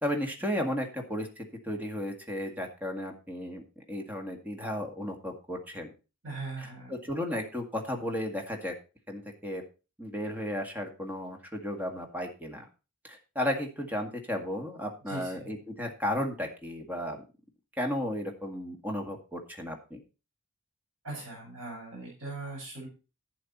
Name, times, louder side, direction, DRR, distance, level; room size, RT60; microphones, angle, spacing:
voice 1, 0.0-5.9 6.6-8.7 9.1-9.6 10.0-12.7 13.0-17.2 17.8-20.0, left 1 dB, 10° right, 2 dB, 2.0 m, -34 dB
voice 2, 6.2-7.0 15.1-15.5 21.0-22.9, right 3 dB, 75° right, -3 dB, 5.9 m, -40 dB
11.5 x 8.7 x 4.2 m, 0.32 s
head